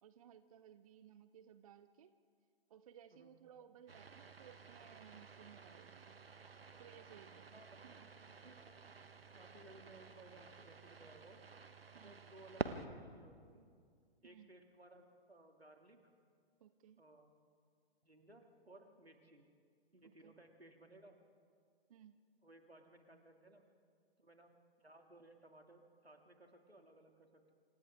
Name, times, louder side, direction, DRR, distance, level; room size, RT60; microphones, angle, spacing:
voice 1, 0.0-2.1 2.7-6.1 6.8-8.1 11.9-12.2 14.2-14.5 16.6-17.1 20.0-20.3 21.9-22.3, right 9 dB, 35° right, 13 dB, 0.7 m, -60 dB
sound 1, 3.9-12.9, right 4 dB, 70° right, 1.4 m, -50 dB
voice 2, 7.5-7.9 8.4-8.8 9.3-11.4 12.0-13.7 14.2-16.1 17.0-17.3 18.0-19.5 19.9-21.2 22.4-23.6 24.2-27.5, right 1 dB, 85° right, 4 dB, 2.7 m, -61 dB
28.0 x 27.5 x 3.7 m, 2.1 s
figure-of-eight pair, 125°, 30 cm